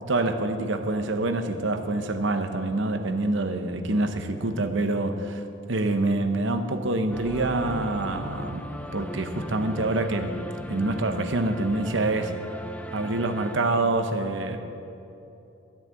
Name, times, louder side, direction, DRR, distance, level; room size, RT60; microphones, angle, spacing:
voice 1, 0.1-10.4 10.7-12.4 12.9-14.6, right 2 dB, 60° right, 7 dB, 0.9 m, -26 dB
sound 1, 7.1-13.6, left 1 dB, 5° left, 0.4 m, -37 dB
13.0 x 7.4 x 8.8 m, 2.9 s
head